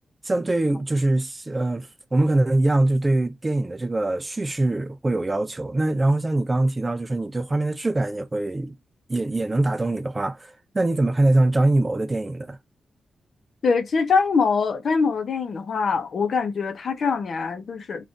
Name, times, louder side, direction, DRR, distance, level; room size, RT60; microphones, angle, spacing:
voice 1, 0.2-8.7 9.1-12.6, right 2 dB, 20° right, 0.4 m, -23 dB
voice 2, 13.6-18.0, left 5 dB, 60° left, 0.7 m, -23 dB
3.6 x 2.5 x 3.9 m
wide cardioid pair, 115°, 0 cm